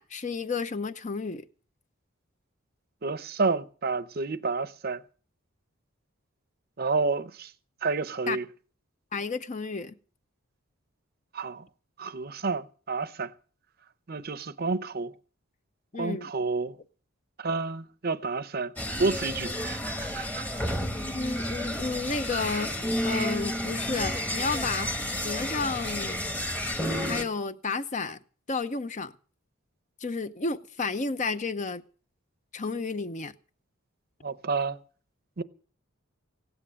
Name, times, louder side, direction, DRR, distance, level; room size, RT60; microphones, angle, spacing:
voice 1, 0.0-1.4 8.3-8.4 9.1-9.9 15.9-16.3 20.9-25.0 25.2-26.2 27.0-28.2 28.5-29.1 30.0-31.8 32.5-33.3, left 4 dB, 35° left, 0.6 m, -32 dB
voice 2, 3.0-5.0 6.8-7.5 7.8-8.4 11.3-11.6 12.0-13.3 14.1-15.1 16.0-16.7 17.4-18.7 19.0-20.6 34.2-34.8 35.4-35.5, right 4 dB, 45° right, 0.7 m, -30 dB
sound 1, 18.8-27.2, equal, 10° left, 1.1 m, -31 dB
16.5 x 9.9 x 6.3 m
head